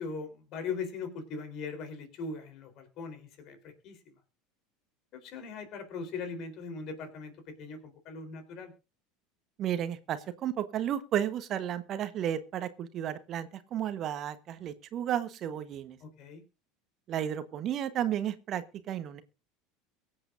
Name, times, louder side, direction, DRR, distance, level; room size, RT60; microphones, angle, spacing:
voice 1, 0.0-4.1 5.1-8.7 16.0-16.4, left 5 dB, 50° left, 6 dB, 3.8 m, -40 dB
voice 2, 9.6-16.0 17.1-19.2, right 10 dB, 45° right, 11 dB, 1.2 m, -33 dB
23.5 x 7.9 x 2.6 m, 0.30 s
figure-of-eight pair, 75°, 0 cm